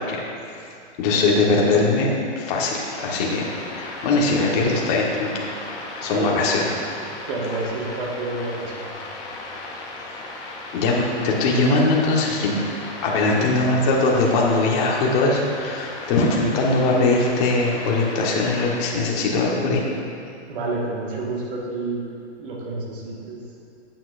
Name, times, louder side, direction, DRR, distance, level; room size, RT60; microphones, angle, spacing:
voice 1, 1.0-5.4 5.8-6.7 10.7-12.6 13.0-19.8, left 3 dB, 35° left, -2 dB, 1.3 m, -21 dB
sound 1, 2.8-18.8, left 2 dB, 10° left, 0.4 m, -36 dB
voice 2, 6.0-6.7 7.3-9.0 13.3-13.7 20.5-22.0 22.4-23.4, right 2 dB, 50° right, -3 dB, 1.7 m, -29 dB
9.1 x 8.6 x 2.5 m, 2.5 s
hypercardioid pair, 145°, 35 cm